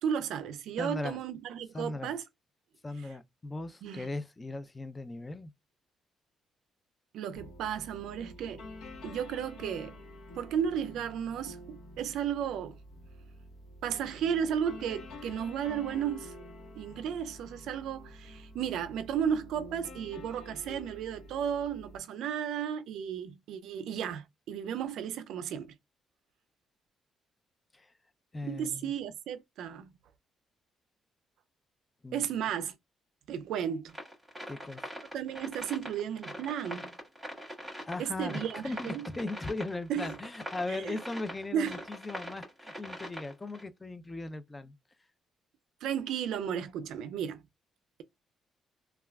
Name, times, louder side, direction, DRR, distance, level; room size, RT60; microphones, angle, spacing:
voice 1, 0.0-2.2 3.8-4.1 7.1-8.6 9.0-10.0 10.3-12.8 13.8-16.3 16.8-25.8 28.4-29.9 32.1-32.7 33.3-33.9 35.1-36.9 38.0-39.1 39.9-40.2 40.7-41.0 41.5-41.8 45.8-47.4, right 8 dB, 80° right, 0.3 m, -34 dB
voice 2, 0.8-1.2 1.7-2.1 2.8-5.5 27.7-27.9 28.3-28.9 32.0-32.3 34.5-34.9 37.9-44.8, left 2 dB, 20° left, 0.4 m, -38 dB
sound 1, 7.3-22.0, left 1 dB, 85° left, 0.9 m, -48 dB
sound 2, 33.9-43.6, equal, 5° right, 1.7 m, -43 dB
3.2 x 2.3 x 2.2 m
cardioid pair, 90°, 0 cm